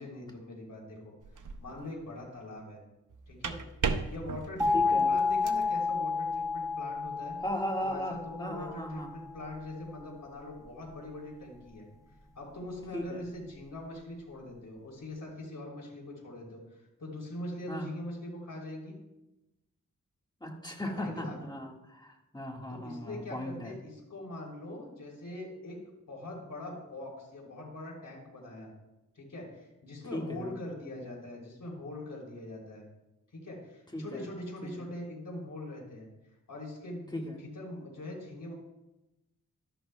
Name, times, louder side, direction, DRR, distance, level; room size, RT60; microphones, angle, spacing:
voice 1, 0.0-2.8 3.3-3.6 4.1-7.4 7.8-11.9 12.3-18.9 20.8-21.4 22.8-25.8 26.1-28.7 29.1-32.8 33.3-36.1 36.5-38.5, left 1 dB, 75° left, -2 dB, 3.2 m, -42 dB
sound 1, 1.2-1.8 3.1-5.7, right 5 dB, 70° right, 0.7 m, -36 dB
sound 2, 4.6-9.3, left 4 dB, 10° right, 1.3 m, -30 dB
voice 2, 4.7-5.1 7.4-9.1 12.9-13.2 17.7-17.9 20.4-23.7 30.1-30.5 33.9-34.3 34.6-34.9 37.1-37.4, equal, 15° left, 1 dB, 1.7 m, -37 dB
12.5 x 11.0 x 2.2 m, 0.97 s
wide cardioid pair, 65°, 32 cm